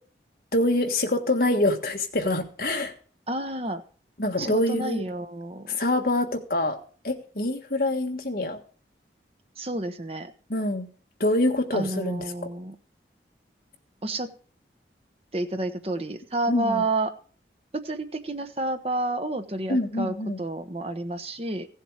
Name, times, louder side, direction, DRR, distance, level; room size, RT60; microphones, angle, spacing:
voice 1, 0.5-2.9 4.2-5.0 5.7-6.8 7.0-8.6 10.5-10.9 11.2-12.2 16.5-16.8 19.7-20.4, left 1 dB, 55° left, 4 dB, 1.6 m, -25 dB
voice 2, 3.3-3.8 4.4-5.8 9.6-10.3 11.7-12.8 14.0-14.3 15.3-17.1 17.7-21.7, right 2 dB, 35° right, 8 dB, 1.0 m, -30 dB
16.0 x 7.4 x 4.9 m, 0.41 s
head